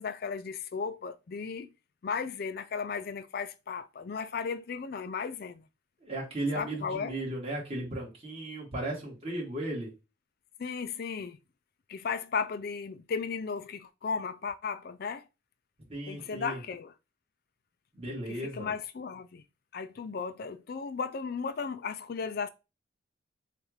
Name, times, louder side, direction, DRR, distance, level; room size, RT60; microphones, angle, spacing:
voice 1, 0.0-1.7 2.0-5.6 6.5-7.2 10.6-11.4 11.9-15.2 16.1-16.9 18.3-19.4 19.7-22.5, left 5 dB, 55° left, 0.4 m, -35 dB
voice 2, 6.0-9.9 15.9-16.6 17.9-18.7, right 1 dB, 35° right, 2.2 m, -35 dB
6.3 x 2.5 x 3.1 m
head